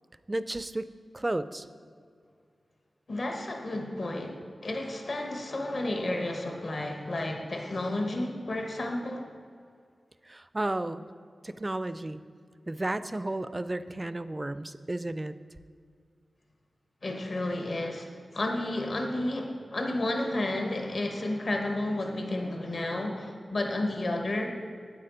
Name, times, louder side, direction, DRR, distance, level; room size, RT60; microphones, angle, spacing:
voice 1, 0.3-1.7 10.2-11.0 11.4-12.2 12.7-15.3, right 1 dB, 30° right, 13 dB, 0.3 m, -33 dB
voice 2, 3.1-9.3 17.0-24.5, left 1 dB, 60° left, 3 dB, 1.1 m, -32 dB
8.7 x 8.5 x 3.9 m, 2.2 s
cardioid pair, 50°, 0 cm